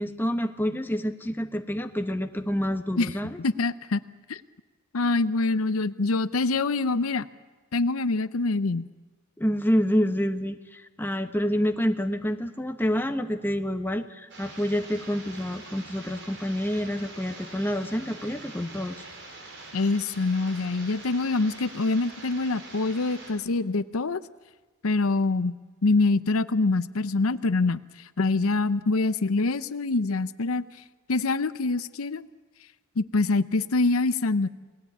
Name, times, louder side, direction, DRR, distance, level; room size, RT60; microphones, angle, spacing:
voice 1, 0.0-3.4 9.4-19.0, equal, 10° left, 7 dB, 1.2 m, -28 dB
voice 2, 3.4-4.0 4.3-4.4 4.9-7.3 7.7-8.9 19.7-24.2 24.8-25.6 25.8-27.8 28.2-30.6 31.1-32.3 33.0-34.5, left 3 dB, 80° left, 14 dB, 0.7 m, -25 dB
sound 1, 14.3-23.3, right 2 dB, 60° right, 5.8 m, -44 dB
28.5 x 19.5 x 8.5 m, 1.3 s
head